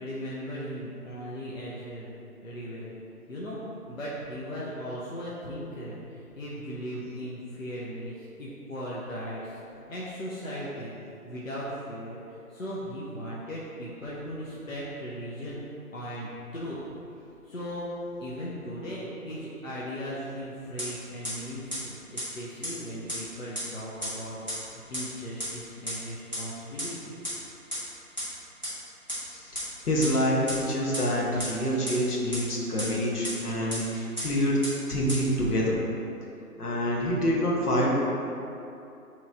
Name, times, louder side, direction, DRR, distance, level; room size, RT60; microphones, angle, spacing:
voice 1, 0.0-2.1 2.4-2.9 3.3-3.6 3.9-9.6 9.9-10.9 11.2-15.6 15.9-16.8 17.5-17.9 18.2-24.4 24.6-27.2, equal, 55° left, -7 dB, 0.6 m, -37 dB
sound 1, 20.8-20.9 21.2-21.3 21.7-21.8 22.2-22.3 22.6-22.7 23.1-23.2 23.5-23.6 24.0-24.1 24.5-24.6 24.9-25.0 25.4-25.5 25.9-26.0 26.3-26.4 26.8-26.9 27.2-27.3 27.7-27.8 28.2-28.3 28.6-28.7 29.1-29.2 29.5-29.6 30.0-30.1 30.5-30.6 30.9-31.0 31.4-31.5 31.9-32.0 32.3-32.4 32.8-32.9 33.2-33.3 33.7-33.8 34.2-34.3 34.6-34.7 35.1-35.2, equal, 30° left, 0.8 m, -32 dB
voice 2, 29.9-34.6 34.9-35.8 36.6-37.9, equal, 75° left, -4 dB, 0.9 m, -26 dB
3.0 x 2.5 x 4.3 m, 2.7 s
figure-of-eight pair, 175°, 46 cm